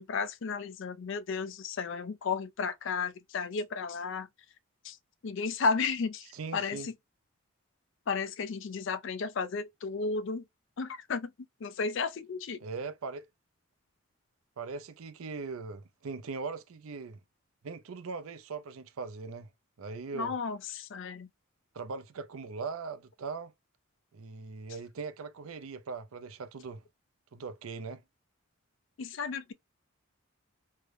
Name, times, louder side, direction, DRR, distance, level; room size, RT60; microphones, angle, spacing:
voice 1, 0.0-4.3 4.8-5.0 5.2-6.9 8.1-10.4 10.8-11.3 11.6-12.6 20.1-21.3 29.0-29.5, left 5 dB, 55° left, 0.4 m, -33 dB
voice 2, 6.3-6.9 12.6-13.3 14.6-17.2 17.6-19.5 19.8-20.3 21.7-23.5 24.1-26.8 27.3-28.0, right 4 dB, 75° right, 0.5 m, -40 dB
3.7 x 2.1 x 3.3 m
head